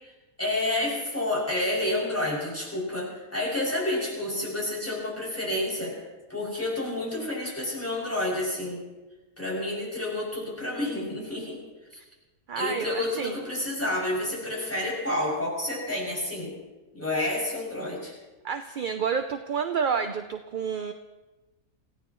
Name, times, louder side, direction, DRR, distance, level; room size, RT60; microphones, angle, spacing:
voice 1, 0.4-6.0 6.3-8.8 9.4-11.6 12.5-16.5 16.9-18.1, left 1 dB, 10° left, -5 dB, 6.7 m, -29 dB
voice 2, 12.5-13.4 18.4-20.9, right 6 dB, 50° right, 8 dB, 0.6 m, -29 dB
27.5 x 16.5 x 3.1 m, 1.1 s
omnidirectional pair, 1.5 m